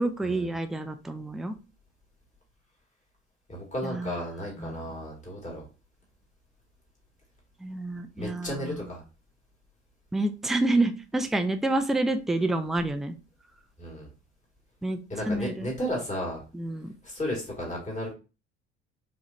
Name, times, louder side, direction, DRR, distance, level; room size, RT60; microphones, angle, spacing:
voice 1, 0.0-1.6 3.8-4.2 4.6-4.8 7.6-8.8 10.1-13.1 14.8-15.0 15.2-15.7 16.5-16.9, right 2 dB, ahead, 8 dB, 0.4 m, -28 dB
voice 2, 3.5-5.6 8.2-9.0 13.8-14.1 15.1-16.4 17.0-18.1, equal, 20° left, -2 dB, 2.4 m, -33 dB
4.7 x 3.2 x 2.8 m, 0.32 s
figure-of-eight pair, 55°, 34 cm